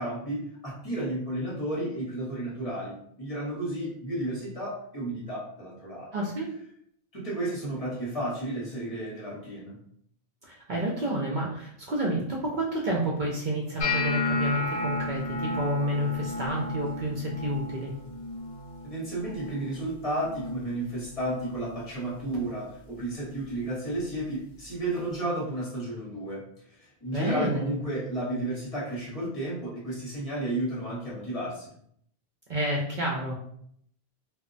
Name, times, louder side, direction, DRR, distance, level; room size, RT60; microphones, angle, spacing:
voice 1, 0.0-6.2 7.1-9.8 18.9-26.4 27.0-31.7, right 1 dB, 35° left, -6 dB, 0.9 m, -32 dB
voice 2, 6.1-6.5 10.4-17.9 27.1-27.8 32.5-33.4, right 1 dB, 55° right, -2 dB, 0.6 m, -29 dB
sound 1, 13.8-19.9 20.2-20.7 21.0-21.6 22.2-22.4 24.2-24.3, left 2 dB, 75° left, 0.8 m, -33 dB
2.1 x 2.1 x 3.8 m, 0.67 s
omnidirectional pair, 1.1 m